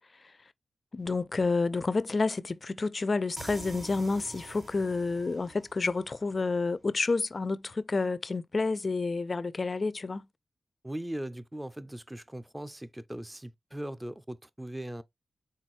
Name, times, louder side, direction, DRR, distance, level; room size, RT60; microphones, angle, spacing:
voice 1, 0.9-10.3, left 3 dB, 50° left, 0.4 m, -29 dB
sound 1, 3.4-6.9, right 2 dB, 55° right, 1.3 m, -47 dB
voice 2, 10.8-15.0, right 1 dB, 15° right, 0.6 m, -39 dB
4.3 x 3.6 x 3.1 m
cardioid pair, 45°, 0 cm